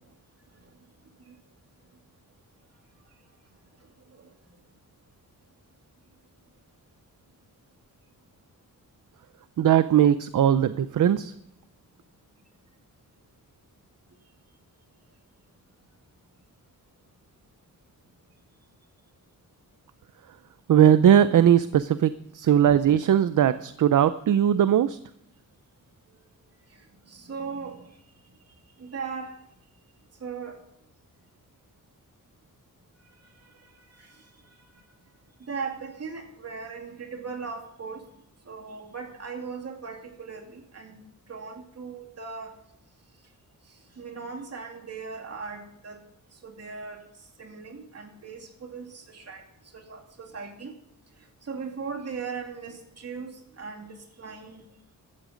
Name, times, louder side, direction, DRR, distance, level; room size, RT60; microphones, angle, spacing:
voice 1, 9.6-11.3 20.7-25.0, right 10 dB, 65° right, 13 dB, 0.6 m, -19 dB
voice 2, 27.1-27.8 28.8-29.3 30.2-30.6 35.4-38.0 38.5-41.0 41.3-42.5 44.0-46.0 46.4-47.0 47.4-49.4 49.7-50.7 51.5-54.7, right 5 dB, 45° right, 3 dB, 2.6 m, -38 dB
16.0 x 13.0 x 5.1 m, 0.73 s
wide cardioid pair, 165°, 33 cm